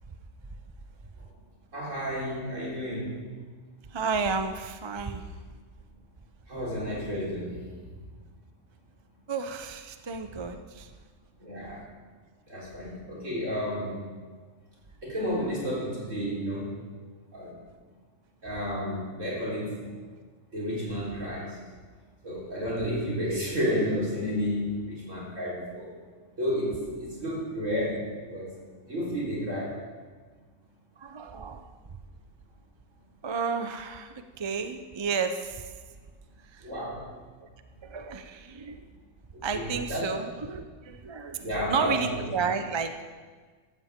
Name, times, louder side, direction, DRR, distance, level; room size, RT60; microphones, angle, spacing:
voice 1, 1.7-3.2 6.5-7.6 11.4-11.8 12.5-14.0 15.0-16.7 17.3-17.5 18.4-19.8 20.5-21.6 22.2-25.9 26.4-28.5 28.8-29.8 36.6-37.0 39.3-40.1 41.4-42.3, equal, 75° right, -5 dB, 4.6 m, -31 dB
voice 2, 3.9-5.3 9.3-10.9 31.0-31.6 33.2-35.6 36.5-36.7 37.8-38.8 39.4-43.0, right 5 dB, 30° right, 8 dB, 0.6 m, -32 dB
16.0 x 12.5 x 3.7 m, 1.5 s
omnidirectional pair, 1.3 m